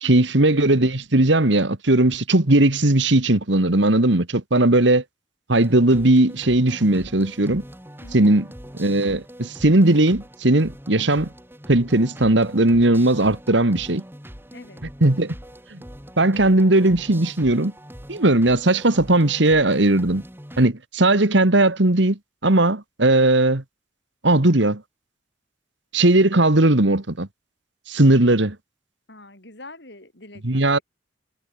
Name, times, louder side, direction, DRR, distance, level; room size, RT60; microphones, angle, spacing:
voice 1, 0.0-5.0 5.5-7.6 8.1-8.5 8.8-11.3 11.7-14.0 15.0-15.3 15.7-15.8 16.2-17.7 18.1-20.2 20.6-23.6 24.2-24.8 25.9-27.3 27.9-28.6 30.4-30.8, right 2 dB, 70° right, 1.9 m, -18 dB
sound 1, 5.5-20.7, equal, 10° right, 4.0 m, -42 dB
voice 2, 8.0-8.4 14.5-14.8 29.1-30.8, left 2 dB, 60° left, 6.9 m, -44 dB
head